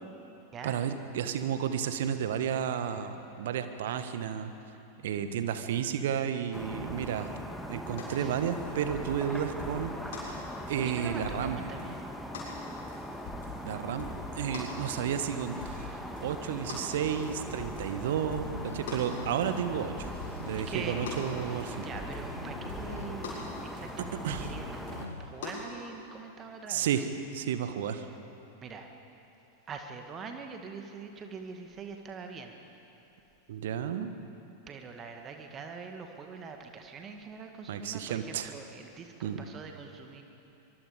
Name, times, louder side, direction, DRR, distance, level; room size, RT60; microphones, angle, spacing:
voice 1, 0.6-4.5 5.0-7.3 7.7-11.6 13.6-14.1 14.3-20.1 20.4-21.9 24.2-24.5 26.7-27.1 27.3-28.0 33.5-34.1 37.7-38.5 39.2-39.4, right 8 dB, 55° right, 9 dB, 1.4 m, -32 dB
sound 1, 6.5-25.1, equal, ahead, 1.7 m, -41 dB
sound 2, 8.0-8.2 8.5-9.2 9.6-9.9 10.1-10.3 10.7-10.8 11.2-11.5 11.8-11.9 12.3-12.5 12.9-13.6 14.0-14.3 14.5-14.7 15.1-15.3 15.6-15.9 16.2-16.3 16.7-16.9 17.2-17.9 18.3-18.6 18.9-19.1 19.4-19.6 20.0-21.3 21.6-22.3 22.7-23.0 23.2-23.5 23.8-24.0 24.3-24.6 24.9-25.0 25.4-25.7, left 4 dB, 55° left, 6.9 m, -42 dB
voice 2, 10.8-12.1 20.5-21.0 21.7-27.0 28.6-28.9 29.7-32.6 34.7-40.2, right 5 dB, 25° right, 4 dB, 1.9 m, -43 dB
sound 3, 18.1-25.8, left 3 dB, 80° left, 0.8 m, -45 dB
24.5 x 23.5 x 5.2 m, 2.9 s
figure-of-eight pair, 90°, 0 cm